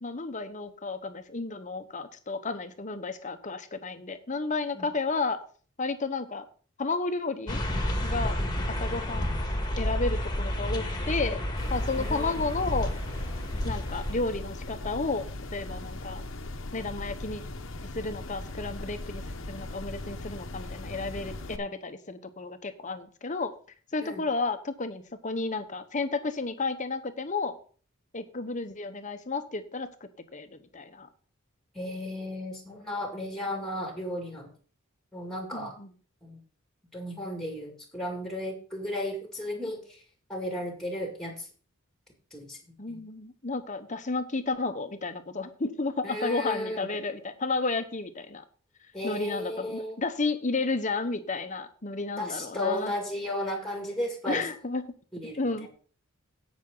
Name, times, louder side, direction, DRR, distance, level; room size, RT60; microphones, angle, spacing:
voice 1, 0.0-5.4 5.8-6.4 6.8-7.6 8.0-8.4 8.7-9.3 9.8-11.4 11.7-12.9 13.6-16.2 16.7-17.4 17.9-23.5 23.9-27.6 28.1-31.1 35.5-35.9 42.8-48.4 49.0-52.9 54.3-54.8 55.4-55.7, left 3 dB, 35° left, 10 dB, 1.0 m, -32 dB
sound 1, 7.5-14.1, equal, 20° left, 1.7 m, -30 dB
sound 2, 11.6-21.6, left 2 dB, 60° left, 1.0 m, -39 dB
voice 2, 12.0-12.3 24.0-24.2 31.7-34.5 35.1-35.7 36.2-36.4 36.9-40.0 40.3-41.5 42.3-42.6 42.9-43.0 46.0-46.9 48.9-50.0 52.2-54.4 55.1-55.5, left 1 dB, ahead, 2 dB, 2.3 m, -34 dB
16.5 x 6.1 x 3.9 m, 0.41 s
head